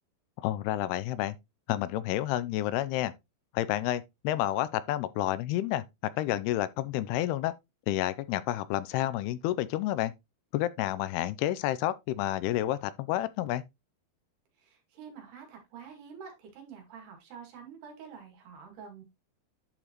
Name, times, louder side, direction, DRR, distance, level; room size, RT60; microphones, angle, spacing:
voice 1, 0.4-1.4 1.7-3.1 3.5-5.8 6.2-7.5 7.9-10.1 10.5-13.6, left 14 dB, 85° left, 2.6 m, -30 dB
voice 2, 14.6-19.0, right 6 dB, 80° right, 4.4 m, -48 dB
11.0 x 5.1 x 3.0 m
omnidirectional pair, 4.6 m